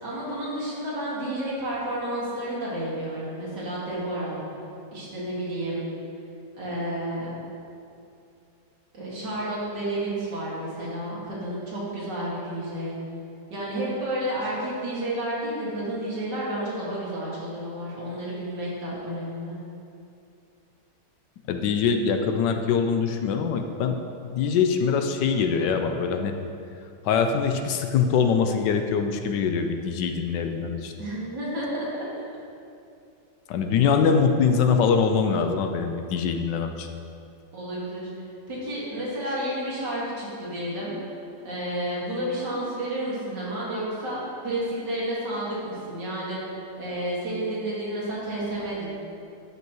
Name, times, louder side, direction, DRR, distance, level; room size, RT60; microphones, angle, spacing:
voice 1, 0.0-4.4 4.9-5.9 6.5-7.3 8.9-13.0 13.5-19.6 31.0-31.9 37.5-38.1 38.5-40.9 41.4-46.4 46.8-48.9, right 1 dB, 70° right, -7 dB, 2.7 m, -31 dB
voice 2, 21.5-24.0 24.2-26.4 27.0-30.9 33.5-36.9, left 6 dB, 80° left, 5 dB, 1.2 m, -23 dB
12.5 x 5.5 x 3.1 m, 2.6 s
omnidirectional pair, 1.9 m